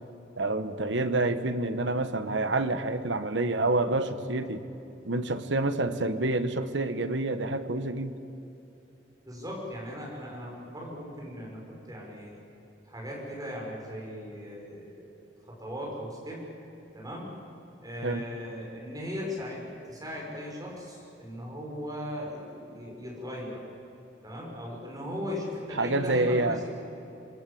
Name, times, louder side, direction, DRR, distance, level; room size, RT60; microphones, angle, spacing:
voice 1, 0.4-4.7 5.0-8.2 18.0-18.3 25.8-26.6, right 2 dB, 75° right, 10 dB, 1.4 m, -28 dB
voice 2, 9.3-12.4 12.9-15.1 15.5-16.4 16.9-17.3 17.8-23.6 24.2-26.8, left 1 dB, 20° right, -3 dB, 6.7 m, -38 dB
27.5 x 21.0 x 8.7 m, 3.0 s
head